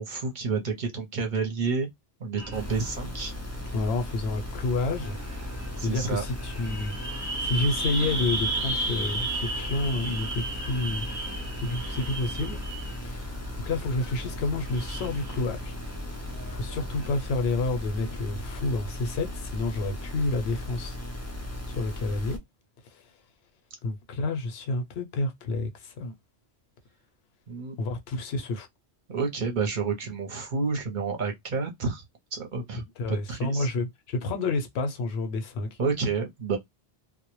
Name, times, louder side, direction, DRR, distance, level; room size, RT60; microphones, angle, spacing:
voice 1, 0.0-1.9 2.2-3.3 5.8-6.2 27.5-27.8 29.1-32.0 32.3-33.7 35.8-36.6, right 4 dB, 55° right, 0.7 m, -29 dB
sound 1, 2.4-17.1, right 2 dB, 20° right, 0.8 m, -36 dB
sound 2, 2.5-22.4, left 1 dB, 25° left, 0.3 m, -37 dB
voice 2, 3.7-5.5 5.8-6.9 7.2-11.1 11.6-12.6 13.0-13.3 13.6-15.7 16.5-21.0 21.8-22.4 22.9-23.0 23.8-26.1 27.8-28.7 33.0-35.7, left 2 dB, 80° left, 0.8 m, -29 dB
2.1 x 2.1 x 2.9 m
omnidirectional pair, 1.1 m